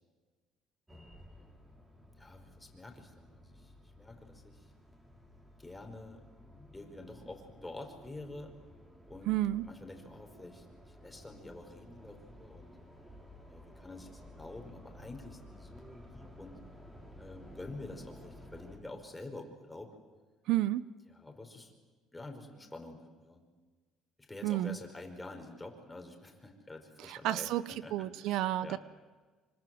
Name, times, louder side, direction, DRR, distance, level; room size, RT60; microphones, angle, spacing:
sound 1, 0.9-18.8, left 1 dB, 10° right, 6.3 m, -54 dB
voice 1, 2.2-4.7 5.6-6.2 6.7-8.5 9.1-9.3 9.6-12.8 13.5-16.6 17.2-19.9 21.1-21.7 22.1-23.4 24.2-28.8, left 2 dB, 10° left, 4 dB, 5.4 m, -48 dB
voice 2, 9.3-9.7 20.5-20.9 24.4-24.8 27.0-27.6 27.9-28.8, right 14 dB, 70° right, 16 dB, 0.8 m, -31 dB
26.0 x 25.0 x 7.9 m, 1.4 s
cardioid pair, 105°, 0 cm